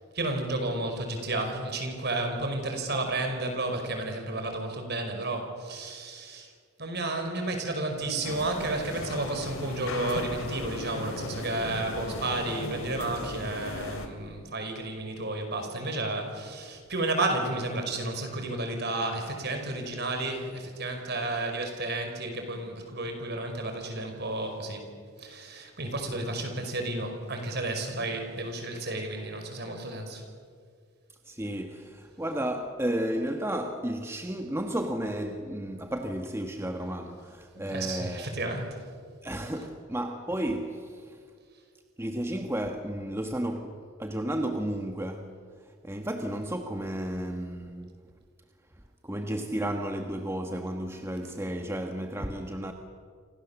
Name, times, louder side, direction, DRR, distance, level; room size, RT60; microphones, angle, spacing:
voice 1, 0.1-6.5 6.8-24.9 25.2-30.2 37.6-38.8, right 2 dB, 50° right, 5.2 m, -32 dB
sound 1, 8.2-14.1, left 2 dB, 90° left, 3.2 m, -37 dB
voice 2, 31.2-38.3 39.2-41.2 42.0-45.5 45.8-47.9 49.0-52.7, right 1 dB, 10° right, 1.3 m, -33 dB
29.5 x 26.0 x 7.3 m
head